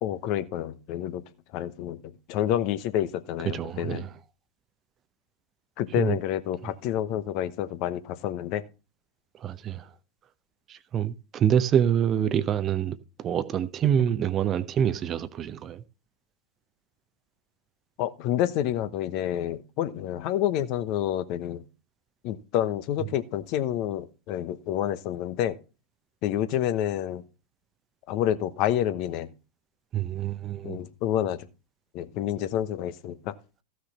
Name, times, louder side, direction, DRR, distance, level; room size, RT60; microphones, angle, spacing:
voice 1, 0.0-1.2 1.5-4.1 5.8-8.6 18.0-21.6 22.2-25.6 26.2-27.2 28.1-29.3 30.6-31.4 31.9-33.3, left 11 dB, 40° left, 0.9 m, -28 dB
voice 2, 3.5-4.1 6.0-6.2 9.4-9.9 10.7-15.8 29.9-30.8, right 9 dB, 30° right, 0.7 m, -26 dB
14.5 x 6.3 x 4.2 m
figure-of-eight pair, 90°, 0 cm